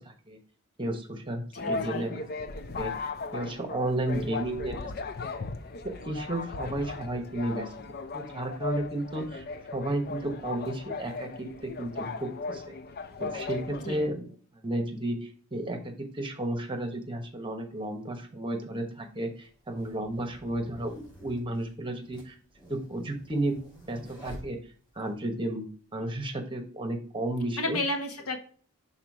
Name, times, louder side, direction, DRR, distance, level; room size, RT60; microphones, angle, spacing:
voice 1, 0.0-0.4 0.8-2.3 2.8-4.9 5.4-5.5 5.8-7.7 8.1-9.4 9.7-12.7 13.2-14.2 14.6-22.4 22.6-23.6 23.9-24.6 24.9-27.8, right 1 dB, 20° right, 4 dB, 1.1 m, -33 dB
voice 2, 1.5-2.1 13.8-14.0 27.6-28.4, left 1 dB, 75° left, 4 dB, 1.4 m, -32 dB
sound 1, 1.6-14.1, left 4 dB, 45° left, 0.5 m, -37 dB
sound 2, 17.7-17.8 18.7-25.1, equal, 20° left, 2.7 m, -50 dB
6.0 x 4.1 x 4.7 m, 0.43 s
head